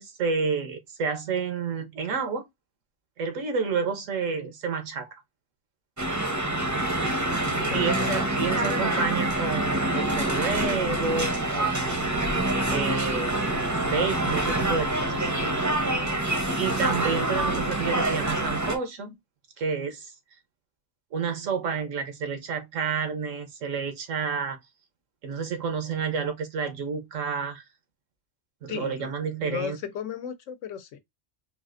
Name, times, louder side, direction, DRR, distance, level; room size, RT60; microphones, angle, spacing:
voice 1, 0.0-2.4 3.2-5.2 7.7-12.3 12.7-15.3 16.6-19.2 19.6-20.1 21.1-24.6 25.2-27.6 28.6-29.8, right 5 dB, 85° right, 1.2 m, -30 dB
sound 1, 6.0-18.8, right 1 dB, 20° right, 0.5 m, -26 dB
voice 2, 7.7-8.2 28.7-29.1 29.4-31.0, left 8 dB, 80° left, 1.0 m, -35 dB
4.0 x 2.4 x 2.4 m
omnidirectional pair, 1.3 m